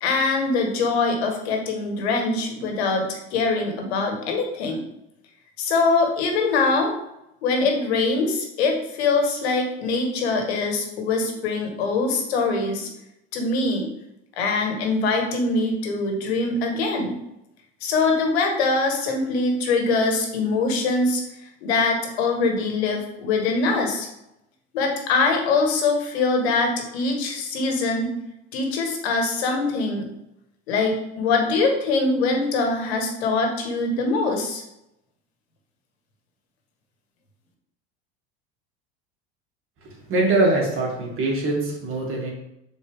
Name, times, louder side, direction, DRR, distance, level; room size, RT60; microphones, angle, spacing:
voice 1, 0.0-4.8 5.6-6.9 7.4-12.9 13.3-13.9 14.4-17.1 17.8-21.2 21.6-24.1 24.7-28.1 28.5-30.1 30.7-34.6, left 3 dB, 85° left, 3 dB, 1.6 m, -23 dB
voice 2, 39.8-42.3, right 2 dB, 40° right, -1 dB, 2.4 m, -23 dB
6.5 x 4.4 x 3.6 m, 0.83 s
supercardioid pair, 105°, 32 cm